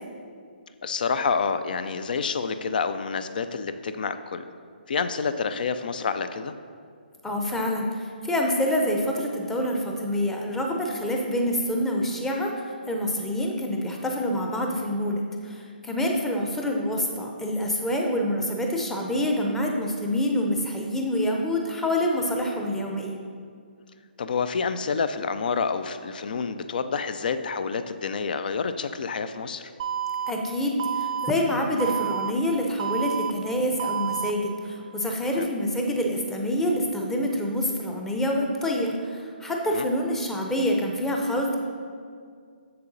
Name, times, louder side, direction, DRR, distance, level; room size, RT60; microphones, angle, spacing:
voice 1, 0.8-4.4 4.9-6.5 13.6-13.7 24.2-29.7 35.3-35.5 39.7-39.9, left 5 dB, 60° left, 11 dB, 0.4 m, -28 dB
voice 2, 7.2-12.5 12.9-23.2 30.3-41.6, left 1 dB, 5° left, 1 dB, 0.6 m, -26 dB
Alarm, 29.8-30.3 30.8-31.3 31.8-32.3 32.8-33.3 33.8-34.3, right 8 dB, 40° right, 0.5 m, -29 dB
6.8 x 6.8 x 4.0 m, 2.2 s
hypercardioid pair, 150°, 5 cm